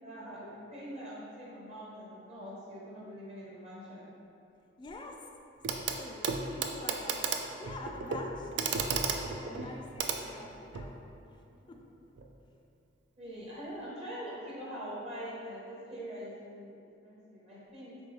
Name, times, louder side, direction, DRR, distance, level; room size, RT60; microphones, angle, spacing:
voice 1, 0.0-4.1 9.5-9.7 11.4-11.8 13.2-18.0, equal, 35° right, -7 dB, 0.8 m, -44 dB
voice 2, 4.8-5.2 5.6-7.2 7.5-9.0 9.3-11.0 11.3-11.4 11.7-11.8 13.2-13.4, left 2 dB, 25° left, 2 dB, 0.3 m, -46 dB
Clock, 5.6-6.0 6.2-10.9 12.2-12.3, right 5 dB, 65° right, 0.3 m, -34 dB
4.4 x 3.1 x 3.0 m, 2.6 s
head